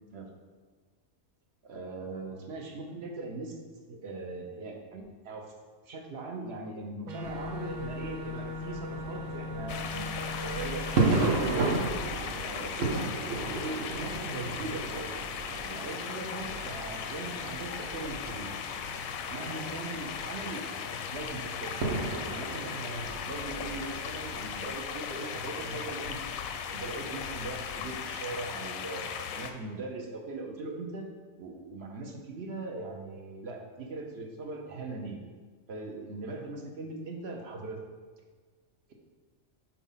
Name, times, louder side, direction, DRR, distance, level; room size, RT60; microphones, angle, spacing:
voice 1, 1.6-3.6 3.9-5.5 5.9-11.9 12.5-13.2 13.4-15.1 15.6-18.5 19.3-21.8 22.3-26.2 26.7-29.0 29.4-31.1 31.4-35.2 35.7-37.9, right 3 dB, 55° right, 1 dB, 0.9 m, -40 dB
sound 1, 7.1-11.0, left 3 dB, 90° right, 1.0 m, -39 dB
sound 2, 7.2-24.4, right 3 dB, 70° right, 1.3 m, -35 dB
sound 3, 9.7-29.5, left 7 dB, 90° left, 1.0 m, -37 dB
4.7 x 4.3 x 5.5 m, 1.5 s
omnidirectional pair, 1.4 m